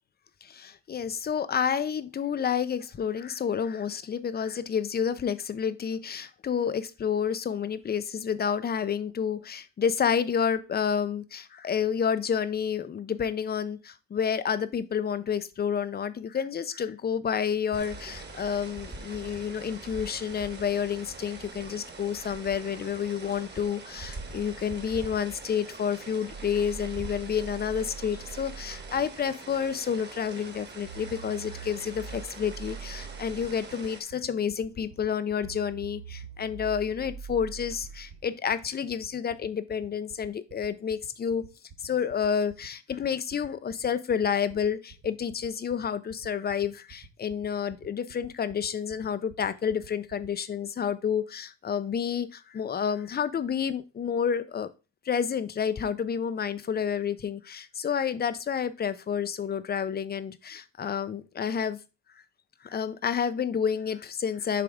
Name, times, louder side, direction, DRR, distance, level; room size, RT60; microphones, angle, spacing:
voice 1, 0.4-41.4 41.8-54.7 55.1-61.8 62.6-64.6, left 7 dB, 25° left, 13 dB, 0.5 m, -29 dB
sound 1, 17.7-34.0, right 3 dB, 25° right, 1.3 m, -44 dB
sound 2, 24.0-29.1 30.8-38.3, right 5 dB, 80° right, 1.4 m, -44 dB
sound 3, 33.0-50.3, right 6 dB, 50° right, 1.3 m, -49 dB
7.1 x 3.4 x 4.9 m, 0.30 s
cardioid pair, 125°, 41 cm